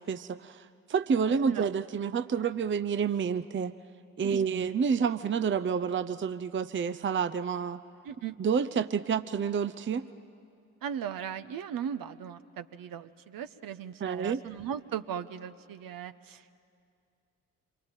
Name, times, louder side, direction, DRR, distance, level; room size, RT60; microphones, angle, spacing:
voice 1, 0.0-3.7 4.2-7.8 8.4-10.1 14.0-14.4, right 6 dB, 30° right, 12 dB, 0.7 m, -29 dB
voice 2, 1.3-1.6 4.2-4.7 8.0-8.4 10.8-16.7, right 8 dB, 55° right, 10 dB, 1.1 m, -38 dB
26.5 x 23.5 x 9.1 m, 2.4 s
hypercardioid pair, 45°, 40 cm